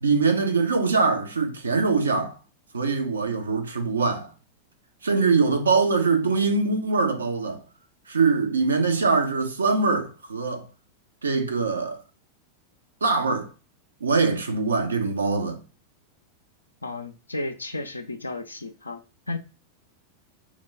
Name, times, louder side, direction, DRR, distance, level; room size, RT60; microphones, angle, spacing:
voice 1, 0.0-2.3 2.7-4.3 5.0-7.6 8.1-10.7 11.2-12.0 13.0-13.5 14.0-15.6, right 4 dB, 75° right, 0.6 m, -23 dB
voice 2, 16.8-19.4, left 2 dB, 80° left, 0.3 m, -33 dB
2.9 x 2.1 x 3.6 m
figure-of-eight pair, 90°, 0 cm